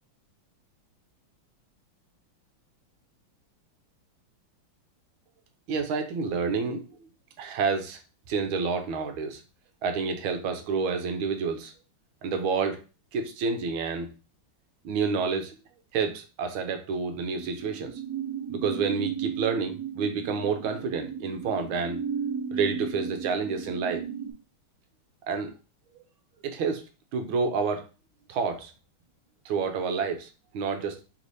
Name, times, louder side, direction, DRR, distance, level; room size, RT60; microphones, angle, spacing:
voice 1, 5.7-7.1 7.4-8.0 8.3-9.4 9.8-11.7 12.2-12.8 13.1-14.1 14.8-15.6 15.9-18.0 18.5-22.0 22.5-24.1 25.3-25.5 26.4-26.8 27.1-27.9 28.3-28.7 29.4-31.0, right 5 dB, 75° right, 6 dB, 1.5 m, -29 dB
sound 1, 17.4-24.3, right 7 dB, 60° right, 1.1 m, -35 dB
3.6 x 3.2 x 4.0 m, 0.32 s
omnidirectional pair, 2.4 m